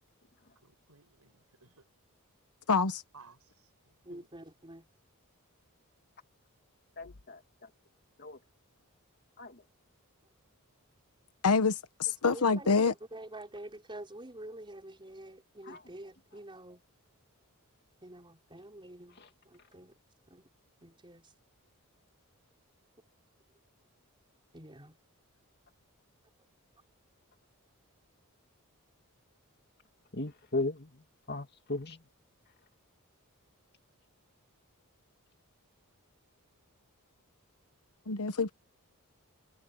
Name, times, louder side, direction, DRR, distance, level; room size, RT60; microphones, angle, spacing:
voice 1, 0.6-1.9 3.1-4.3, right 4 dB, 85° right, 6.4 m, -59 dB
voice 2, 2.7-3.0 11.4-12.9 38.1-38.5, left 4 dB, 80° left, 1.1 m, -26 dB
voice 3, 4.0-4.9 12.1-16.8 18.0-19.9 20.3-20.5 20.8-21.3 24.5-25.0, right 1 dB, 20° right, 4.9 m, -47 dB
voice 4, 7.0-7.7 8.2-8.4 9.4-9.7 15.6-15.8 19.2-19.3 19.6-19.7 30.1-32.1, left 2 dB, 45° left, 2.5 m, -38 dB
head